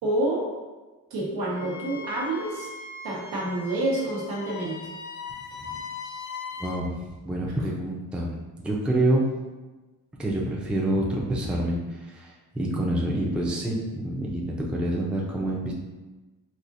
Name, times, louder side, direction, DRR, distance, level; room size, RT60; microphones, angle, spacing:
voice 1, 0.0-0.5 1.1-2.7 3.0-4.8 12.6-12.8, right 1 dB, 85° right, -3 dB, 1.0 m, -28 dB
Wind instrument woodwind instrument, 1.6-6.8, left 4 dB, 55° left, 0.5 m, -39 dB
voice 2, 6.6-6.9 7.2-9.3 10.2-15.7, right 1 dB, 5° right, -4 dB, 0.5 m, -27 dB
4.2 x 2.6 x 2.5 m, 1.2 s
cardioid pair, 80°, 36 cm